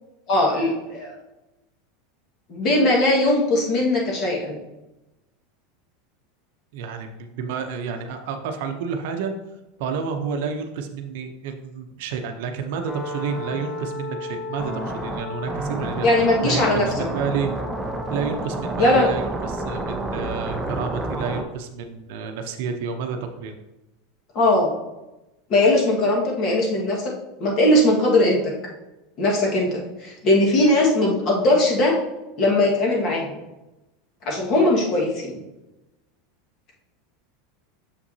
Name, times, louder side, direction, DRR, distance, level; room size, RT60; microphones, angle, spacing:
voice 1, 0.3-1.1 2.5-4.6 16.0-16.9 18.8-19.1 24.3-24.7 25.5-27.1 27.4-28.5 29.2-31.9 32.4-33.4 34.2-35.4, left 1 dB, 35° left, -1 dB, 1.6 m, -19 dB
voice 2, 6.7-9.3 9.8-16.1 16.4-17.5 18.1-23.6, right 6 dB, 65° right, 5 dB, 0.6 m, -30 dB
sound 1, 12.9-21.4, right 1 dB, 10° right, 0.5 m, -30 dB
6.7 x 5.7 x 2.7 m, 0.99 s
supercardioid pair, 160°, 0 cm